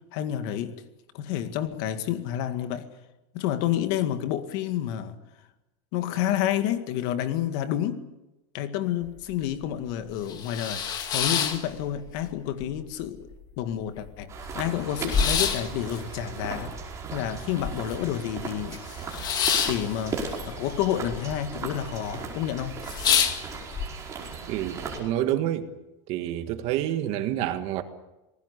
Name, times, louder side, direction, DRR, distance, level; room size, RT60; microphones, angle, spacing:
voice 1, 0.1-0.8 1.1-2.9 3.3-5.2 5.9-8.1 8.5-10.8 11.1-13.3 13.6-16.8 17.1-18.8 19.7-22.7, left 11 dB, 55° left, 2.0 m, -29 dB
sound 1, 9.1-9.2 9.5-9.6 10.1-12.3 12.6-13.3 13.7-13.8 14.0-18.1 18.4-21.2 21.4-22.0 22.4-22.5 22.8-23.9, left 7 dB, 25° left, 2.1 m, -28 dB
sound 2, 14.3-25.0, right 5 dB, 20° right, 5.1 m, -37 dB
voice 2, 24.5-25.7 26.1-27.8, right 12 dB, 45° right, 1.8 m, -28 dB
27.0 x 19.5 x 8.4 m
supercardioid pair, 170°, 15 cm